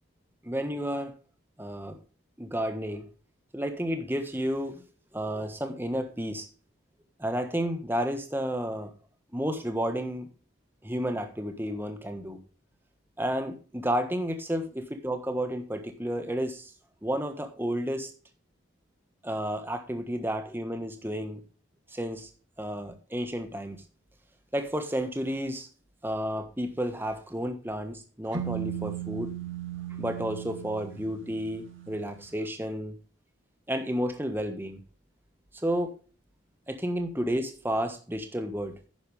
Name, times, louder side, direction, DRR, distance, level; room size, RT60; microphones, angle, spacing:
voice 1, 0.4-1.1 1.6-2.0 2.4-3.1 3.5-4.8 5.1-6.5 7.2-8.9 9.3-10.3 10.8-12.4 13.2-16.7 17.0-18.1 19.2-21.4 21.9-22.3 22.6-23.8 24.5-25.7 26.0-29.3 30.0-33.0 33.7-34.8 35.5-35.9 36.7-38.8, equal, 10° right, 7 dB, 1.4 m, -31 dB
sound 1, 28.3-32.2, right 10 dB, 80° right, 2.1 m, -37 dB
11.0 x 9.2 x 3.3 m, 0.37 s
head